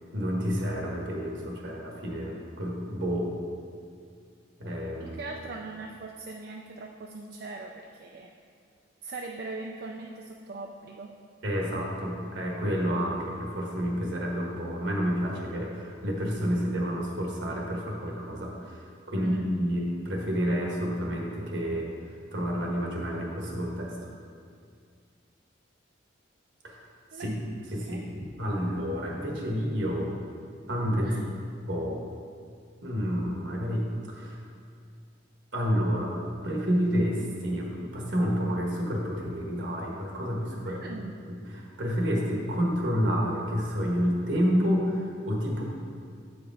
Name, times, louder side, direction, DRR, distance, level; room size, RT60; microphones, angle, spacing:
voice 1, 0.1-3.3 4.6-5.2 11.4-21.9 22.3-23.9 26.6-26.8 27.1-27.3 27.7-30.1 30.7-31.2 31.7-32.0 32.8-34.4 35.5-36.2 36.4-41.0 41.5-45.6, equal, 70° right, -2 dB, 1.5 m, -29 dB
voice 2, 5.1-8.3 9.0-11.1 19.2-19.5 27.1-27.3 27.9-28.0 31.0-31.3 40.6-41.2, right 3 dB, 55° right, 2 dB, 0.4 m, -40 dB
8.2 x 5.0 x 4.8 m, 2.2 s
head